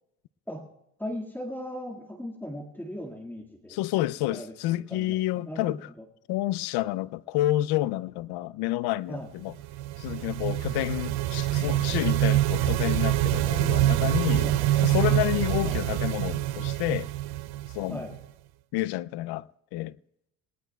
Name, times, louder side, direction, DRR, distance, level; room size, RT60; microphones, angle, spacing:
voice 1, 1.0-3.8 4.3-6.1 9.1-9.3 14.4-15.1 15.6-15.8 17.9-18.1, equal, 5° left, 2.0 m, -38 dB
voice 2, 3.7-5.9 6.3-9.5 10.0-14.5 14.8-17.1 17.7-18.0 18.7-20.0, left 16 dB, 90° left, 0.5 m, -29 dB
sound 1, 9.5-18.2, right 14 dB, 75° right, 0.6 m, -26 dB
28.5 x 19.5 x 2.3 m
cardioid pair, 165°, 38 cm